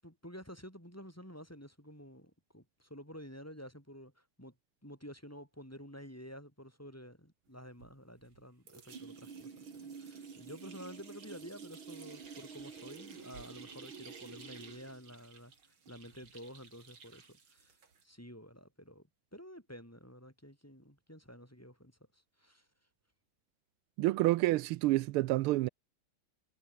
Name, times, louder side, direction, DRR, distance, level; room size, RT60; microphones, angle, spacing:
voice 1, 0.0-4.6 4.8-17.8 18.0-22.7, equal, 5° left, 7.0 m, -51 dB
sound 1, 7.8-8.4 8.7-18.0, right 5 dB, 70° right, 3.6 m, -50 dB
voice 2, 24.0-25.7, right 17 dB, 85° right, 1.5 m, -28 dB
omnidirectional pair, 2.4 m